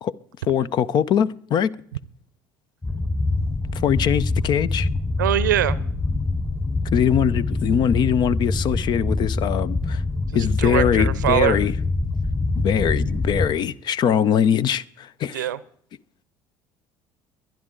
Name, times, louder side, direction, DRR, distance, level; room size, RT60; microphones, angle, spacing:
voice 1, 0.5-1.8 3.7-4.9 6.9-10.0 10.3-11.7 12.6-15.5, left 8 dB, 50° left, 0.6 m, -22 dB
sound 1, 2.8-13.5, left 2 dB, 25° left, 4.3 m, -25 dB
voice 2, 5.2-5.8 10.6-11.6 15.3-15.6, right 13 dB, 80° right, 0.6 m, -22 dB
22.5 x 10.5 x 3.8 m
hypercardioid pair, 65°, 10 cm